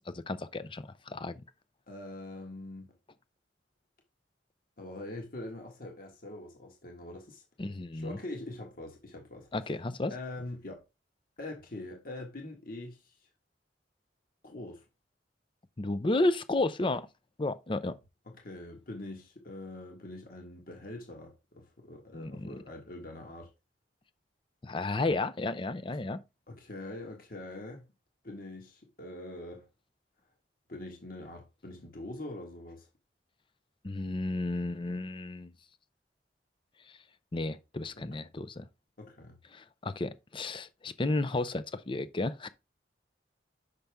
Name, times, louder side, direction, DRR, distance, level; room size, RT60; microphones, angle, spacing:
voice 1, 0.1-1.4 7.6-8.2 9.5-10.1 15.8-17.1 17.4-17.9 22.1-22.5 24.6-26.2 33.8-35.5 37.3-38.7 39.5-42.5, left 2 dB, 30° left, 0.5 m, -32 dB
voice 2, 1.9-2.9 4.8-7.4 7.9-9.5 10.1-10.8 11.4-13.1 14.4-14.8 18.3-23.5 26.5-27.9 28.2-29.6 30.7-32.9 37.9-38.1 39.0-39.4, left 2 dB, 50° left, 1.6 m, -43 dB
6.6 x 5.8 x 3.5 m
head